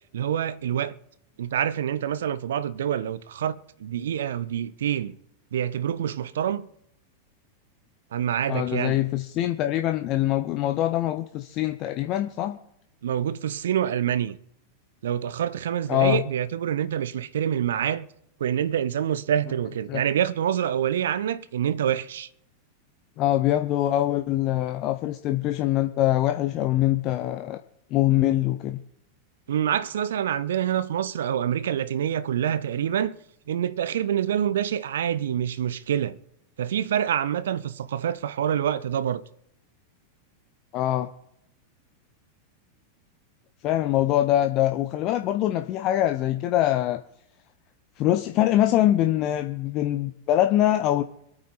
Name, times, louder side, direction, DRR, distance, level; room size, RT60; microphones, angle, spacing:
voice 1, 0.1-1.0 1.4-5.2 5.5-6.7 8.1-9.0 13.0-14.4 15.0-18.1 18.4-22.3 29.5-33.2 33.5-36.2 36.6-39.2, right 9 dB, 60° right, 0.7 m, -26 dB
voice 2, 8.5-12.6 15.9-16.2 19.9-20.0 23.2-27.6 27.9-28.8 40.7-41.1 43.6-47.0 48.0-51.0, left 13 dB, 40° left, 0.8 m, -23 dB
25.5 x 9.0 x 4.1 m
figure-of-eight pair, 90°, 0 cm